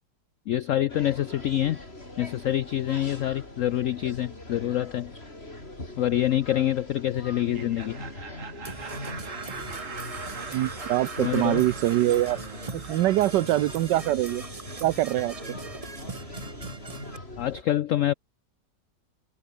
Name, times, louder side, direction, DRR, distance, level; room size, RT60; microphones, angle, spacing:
voice 1, 0.5-1.8 2.2-5.1 6.0-8.0 11.2-11.7 17.4-18.1, left 12 dB, 85° left, 0.6 m, -26 dB
sound 1, 0.9-17.6, left 1 dB, 35° left, 6.0 m, -42 dB
Laughter, 7.4-14.2, right 5 dB, 45° right, 2.2 m, -42 dB
Percussion / Brass instrument, 8.6-17.2, right 3 dB, 20° right, 1.2 m, -41 dB
voice 2, 10.5-12.4 12.9-14.4 14.8-15.3, right 15 dB, 75° right, 1.2 m, -24 dB
omnidirectional pair, 1.9 m